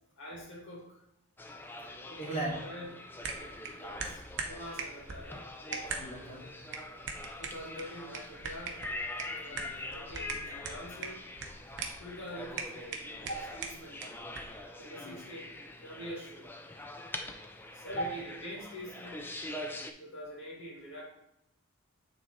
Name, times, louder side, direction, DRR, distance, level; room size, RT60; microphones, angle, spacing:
voice 1, 0.2-1.0 2.1-3.0 3.3-4.2 4.5-5.4 7.4-8.9 9.3-11.3 12.0-13.1 13.5-14.0 14.8-15.5 15.8-16.5 17.7-19.3 20.0-21.0, equal, 55° left, -4 dB, 2.3 m, -45 dB
sound 1, 1.4-19.9, left 2 dB, 10° left, 0.3 m, -44 dB
voice 2, 2.2-2.6 5.6-6.5 9.6-10.1 13.3-13.6 15.0-15.2 17.9-18.1, right 1 dB, 35° left, -9 dB, 1.7 m, -38 dB
sound 2, 3.2-14.6, right 4 dB, 55° right, 0.8 m, -42 dB
8.9 x 3.9 x 3.1 m, 0.83 s
head